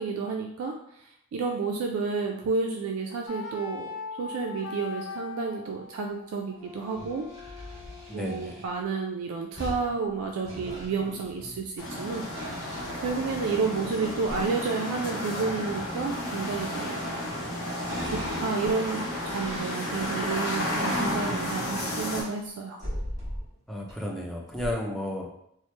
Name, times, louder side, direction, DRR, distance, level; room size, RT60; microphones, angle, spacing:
voice 1, 0.0-3.9 4.2-7.3 8.1-12.2 12.9-17.0 18.0-19.0 19.3-22.8, right 4 dB, 75° right, 1 dB, 0.3 m, -31 dB
sound 1, 3.3-9.1, left 5 dB, 65° left, 0.4 m, -41 dB
sound 2, 6.7-8.7 9.6-11.9 12.3-13.6 14.1-14.5 15.4-17.5 17.9-22.3 22.8-23.6 23.9-24.0 24.5-24.8, equal, 20° right, 1.3 m, -40 dB
voice 2, 8.1-8.6 23.7-25.3, left 1 dB, ahead, -1 dB, 0.4 m, -33 dB
sound 3, 11.8-22.2, left 1 dB, 80° left, 0.8 m, -32 dB
3.0 x 2.0 x 3.1 m, 0.73 s
head